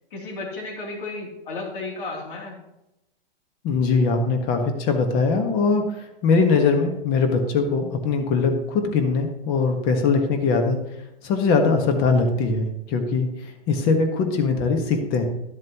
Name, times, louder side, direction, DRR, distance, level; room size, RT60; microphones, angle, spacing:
voice 1, 0.1-2.6, left 3 dB, 55° left, 0 dB, 3.2 m, -33 dB
voice 2, 3.6-5.8 6.2-10.8 11.2-15.3, left 4 dB, 30° left, 5 dB, 1.5 m, -21 dB
12.5 x 7.3 x 3.0 m, 0.89 s
hypercardioid pair, 150°, 30 cm